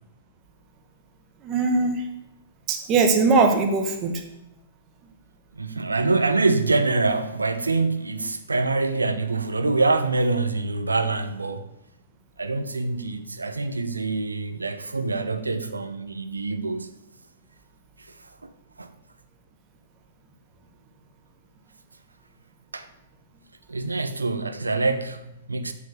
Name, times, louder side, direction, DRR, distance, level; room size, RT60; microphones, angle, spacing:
voice 1, 1.4-2.0 2.7-4.2, right 4 dB, 30° right, 1.8 m, -20 dB
voice 2, 5.6-11.6 12.4-16.9 18.8-18.9 22.7-22.9 23.7-25.7, right 3 dB, 85° right, 1.1 m, -25 dB
8.4 x 7.3 x 8.2 m
figure-of-eight pair, 110°, 0 cm